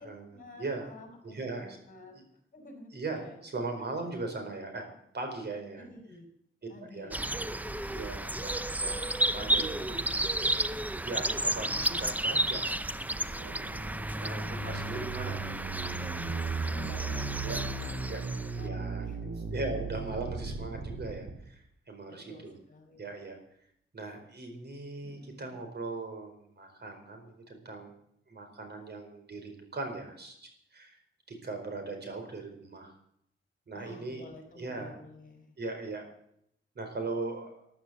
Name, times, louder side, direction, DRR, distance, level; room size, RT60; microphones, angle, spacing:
voice 1, 0.0-2.1 2.5-3.4 5.7-6.3 6.7-7.8 8.3-8.4 9.3-10.2 14.0-15.0 16.4-19.3 22.1-23.1 25.0-25.6 32.0-32.2 33.7-35.6, left 2 dB, 40° left, 3 dB, 6.2 m, -51 dB
voice 2, 1.2-1.8 2.9-4.9 5.1-5.9 6.9-7.1 7.9-10.0 11.0-12.7 13.2-13.8 14.2-15.5 17.4-17.6 18.1-18.2 18.6-19.1 19.5-22.5 23.0-23.4 23.9-27.9 28.3-31.0 31.3-32.9 33.7-34.2 34.6-34.9 35.6-36.1 36.7-37.7, right 3 dB, 50° right, 5 dB, 4.6 m, -39 dB
sound 1, 7.1-18.6, right 1 dB, 10° right, 0.6 m, -32 dB
sound 2, 12.6-21.3, right 4 dB, 70° right, 3.5 m, -37 dB
13.5 x 12.0 x 8.1 m, 0.70 s
wide cardioid pair, 125°, 21 cm